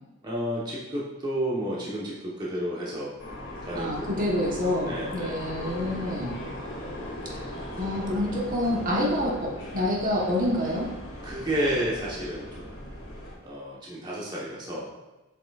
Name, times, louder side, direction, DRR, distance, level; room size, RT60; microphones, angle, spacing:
voice 1, 0.2-3.1 3.6-4.3 4.8-5.4 5.8-6.1 9.1-9.3 11.2-12.7 13.4-14.9, equal, 20° right, -6 dB, 1.0 m, -31 dB
sound 1, 3.2-13.3, left 1 dB, 60° left, 2.2 m, -38 dB
voice 2, 3.7-6.3 7.4-7.5 7.8-10.9, left 1 dB, 40° right, -2 dB, 1.2 m, -27 dB
7.6 x 5.7 x 2.4 m, 1.1 s
head